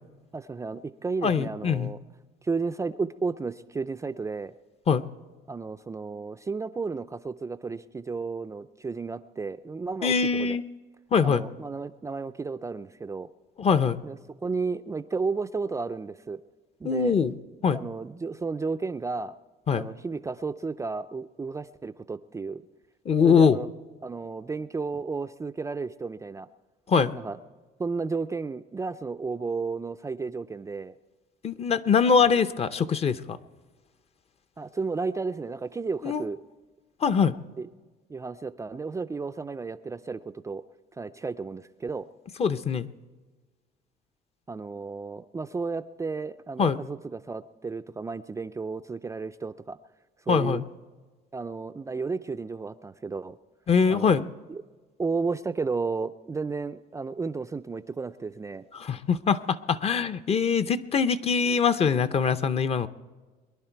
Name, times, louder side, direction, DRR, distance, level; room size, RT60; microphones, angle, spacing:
voice 1, 0.3-2.0 2.4-4.5 5.5-10.6 11.2-13.3 14.0-16.4 16.8-17.2 17.7-19.4 19.7-22.6 23.2-23.7 24.0-26.5 27.1-27.4 27.8-30.9 34.6-36.4 37.6-37.7 38.1-40.6 41.0-42.1 44.5-49.8 50.3-50.6 51.3-53.4 53.9-54.2 54.5-54.6 55.0-58.7, right 4 dB, 20° right, 9 dB, 0.4 m, -33 dB
voice 2, 1.2-1.9 4.9-5.0 10.0-10.6 11.1-11.4 13.6-14.0 16.8-17.3 17.6-17.8 19.7-19.9 23.1-23.6 26.9-27.1 31.4-33.4 36.0-36.2 37.0-37.4 42.4-42.9 46.6-46.8 50.3-50.6 53.7-54.3 58.7-62.9, left 6 dB, 35° left, 12 dB, 0.6 m, -23 dB
23.0 x 11.0 x 4.6 m, 1.3 s
cardioid pair, 110°, 17 cm